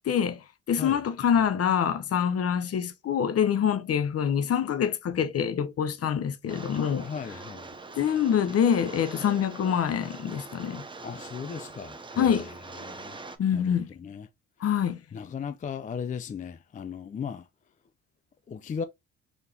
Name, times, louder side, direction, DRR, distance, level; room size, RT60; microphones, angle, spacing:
voice 1, 0.1-0.4 0.7-7.1 8.0-10.9 12.2-12.5 13.4-13.9 14.6-15.0, left 8 dB, 50° left, 0.8 m, -25 dB
Rain, 6.5-13.4, right 3 dB, 15° right, 0.6 m, -43 dB
voice 2, 7.0-7.7 11.0-12.4 12.8-13.2 13.5-14.3 15.1-17.5 18.5-18.8, left 6 dB, 25° left, 0.4 m, -36 dB
4.1 x 3.3 x 2.7 m
cardioid pair, 90°, 30 cm